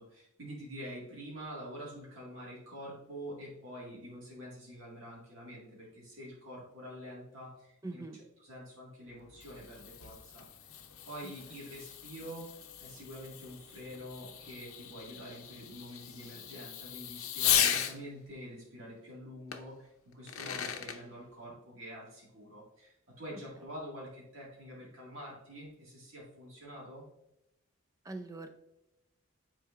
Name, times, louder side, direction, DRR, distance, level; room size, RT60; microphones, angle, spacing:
voice 1, 0.0-8.0 8.4-10.7 11.0-27.0, equal, 60° right, -5 dB, 1.9 m, -46 dB
voice 2, 7.8-8.2 11.2-11.3 28.0-28.5, right 2 dB, 15° right, 7 dB, 0.4 m, -42 dB
Fireworks, 9.1-18.0 19.5-19.6 20.1-21.0, left 10 dB, 75° left, 0.6 m, -36 dB
9.3 x 4.4 x 2.4 m, 0.87 s
head